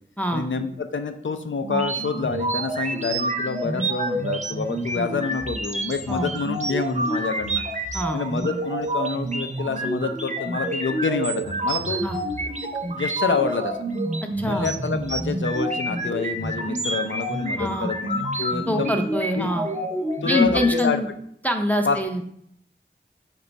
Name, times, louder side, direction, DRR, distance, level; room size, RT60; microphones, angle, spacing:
voice 1, 0.3-7.6 8.1-12.0 12.9-13.8 14.5-19.0 19.3-19.5 20.2-21.0 21.9-22.0, left 4 dB, 80° left, 7 dB, 0.4 m, -27 dB
sound 1, 1.6-20.8, right 1 dB, 40° right, 0.6 m, -28 dB
voice 2, 14.4-14.7 17.6-17.9 18.7-19.7 20.2-21.1 21.4-22.2, left 1 dB, 10° left, 4 dB, 0.4 m, -24 dB
4.9 x 2.2 x 3.9 m, 0.69 s
wide cardioid pair, 45°, 19 cm